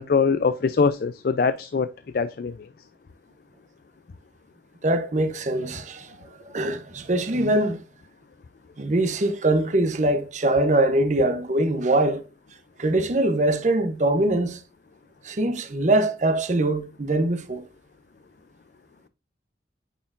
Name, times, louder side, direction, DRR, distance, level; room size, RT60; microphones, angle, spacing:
voice 1, 0.0-1.9 2.1-2.7, left 5 dB, 55° left, 0.4 m, -23 dB
voice 2, 4.8-6.1 6.5-7.8 8.8-12.2 12.8-14.6 15.2-17.6, right 1 dB, 40° right, 0.7 m, -22 dB
9.1 x 4.4 x 2.5 m
head